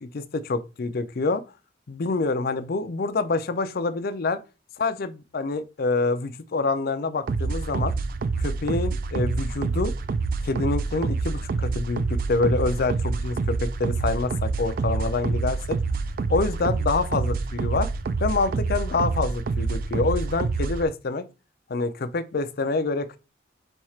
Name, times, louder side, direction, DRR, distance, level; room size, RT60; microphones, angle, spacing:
voice 1, 0.0-1.4 1.9-4.4 4.8-7.9 8.4-9.9 10.4-15.8 16.3-17.9 18.2-21.2 21.7-23.2, left 3 dB, 50° left, 0.4 m, -26 dB
sound 1, 7.3-20.9, right 4 dB, 45° right, 0.3 m, -27 dB
4.5 x 2.4 x 4.2 m
head